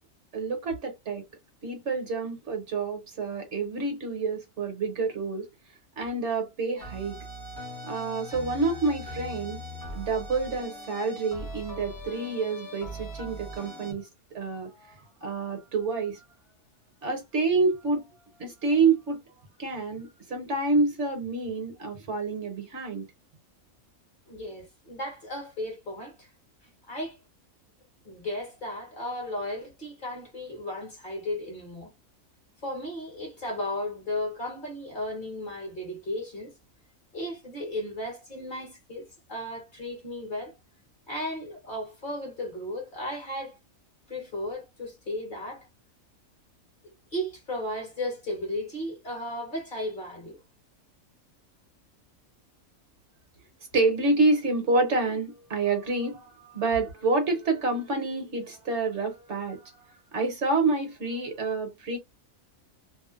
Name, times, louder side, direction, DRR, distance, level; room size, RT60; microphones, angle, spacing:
voice 1, 0.3-1.2 1.6-5.4 6.0-7.2 7.8-9.6 9.9-14.1 14.3-16.2 17.0-18.0 18.4-19.2 19.6-23.1 53.7-59.7 60.1-62.0, right 3 dB, 60° right, 1.1 m, -28 dB
sound 1, 6.8-13.9, left 1 dB, 15° left, 0.8 m, -40 dB
voice 2, 24.3-26.3 26.9-27.2 28.0-31.9 32.6-36.5 37.1-40.5 41.1-43.6 44.1-45.7 47.1-50.4, left 1 dB, 40° left, 1.2 m, -35 dB
2.8 x 2.1 x 2.4 m
omnidirectional pair, 1.4 m